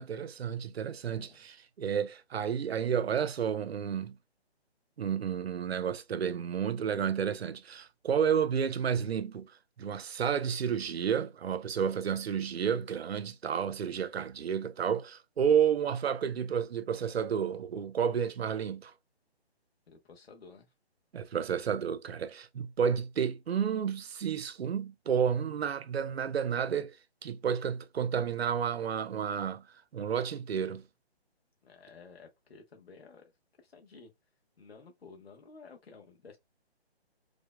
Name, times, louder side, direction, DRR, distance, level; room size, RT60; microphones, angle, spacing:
voice 1, 0.0-1.5 1.8-4.2 5.0-9.5 9.8-18.9 21.1-27.0 27.2-29.6 29.9-30.8, right 7 dB, 70° right, 0.6 m, -31 dB
voice 2, 1.0-1.5 19.9-20.7 31.6-33.3 33.6-34.1 34.6-36.4, left 4 dB, 65° left, 1.2 m, -53 dB
4.9 x 2.2 x 2.3 m
hypercardioid pair, 180°, 33 cm